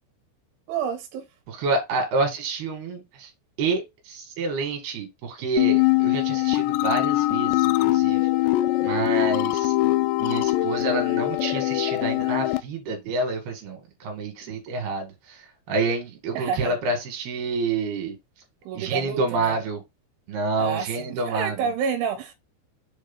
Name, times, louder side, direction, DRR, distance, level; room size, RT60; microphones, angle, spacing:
voice 1, 0.7-1.3 16.3-16.8 18.6-19.6 20.6-22.3, right 7 dB, 80° right, 3.3 m, -29 dB
voice 2, 1.5-3.3 3.6-8.3 8.8-9.7 10.2-15.4 15.7-18.2 18.7-19.8 20.3-21.7, right 3 dB, 60° right, 3.4 m, -28 dB
sound 1, 5.6-12.6, left 18 dB, 85° left, 2.5 m, -22 dB
7.6 x 2.8 x 5.4 m
omnidirectional pair, 5.5 m